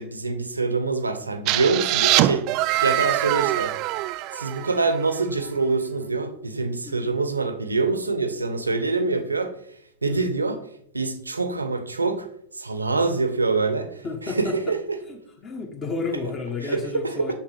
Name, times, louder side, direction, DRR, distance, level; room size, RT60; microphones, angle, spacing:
voice 1, 0.0-2.5 2.8-3.7 4.3-9.6 10.0-10.6 10.9-12.3 12.5-13.9 14.2-14.8 16.6-17.3, right 3 dB, 80° right, 9 dB, 0.9 m, -25 dB
sound 1, 1.5-5.2, right 16 dB, 40° right, 0.3 m, -23 dB
voice 2, 6.8-7.2 10.0-10.3 14.0-14.5 15.1-17.3, left 4 dB, 30° left, 0 dB, 1.3 m, -32 dB
6.8 x 5.7 x 4.5 m, 0.68 s
figure-of-eight pair, 90°, 0 cm